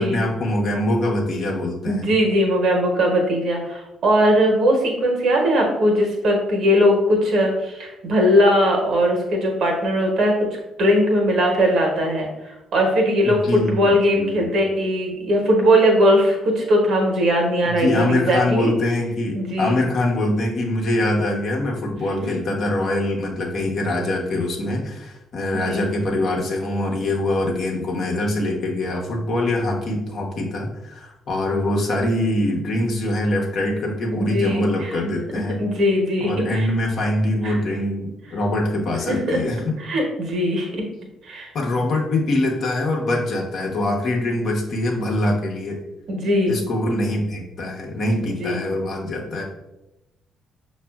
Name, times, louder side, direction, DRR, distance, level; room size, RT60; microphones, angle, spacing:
voice 1, 0.0-2.1 13.2-14.5 17.6-35.6 36.2-39.8 41.5-45.8 46.5-49.4, left 1 dB, 60° left, -1 dB, 0.9 m, -23 dB
voice 2, 1.8-18.7 19.3-19.8 22.2-22.3 25.5-25.8 34.1-34.9 35.6-36.7 37.4-37.6 39.1-39.4 39.8-40.8 41.2-41.5 46.1-46.6 48.4-48.6, equal, 65° right, 1 dB, 1.0 m, -20 dB
5.9 x 2.4 x 2.3 m, 0.94 s
hypercardioid pair, 50°, 0 cm